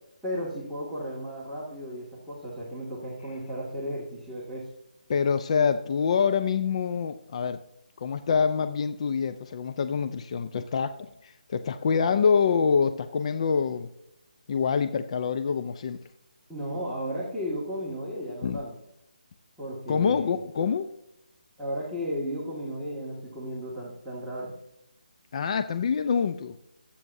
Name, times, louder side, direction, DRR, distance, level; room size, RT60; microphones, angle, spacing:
voice 1, 0.2-4.7 16.5-18.7 19.6-20.4 21.6-24.5, equal, ahead, -10 dB, 2.0 m, -34 dB
voice 2, 5.1-7.6 8.0-13.9 14.5-16.0 16.7-16.8 18.4-18.6 19.9-20.9 25.3-26.6, left 6 dB, 40° left, 9 dB, 0.5 m, -26 dB
25.0 x 8.5 x 2.7 m, 0.83 s
figure-of-eight pair, 155°, 5 cm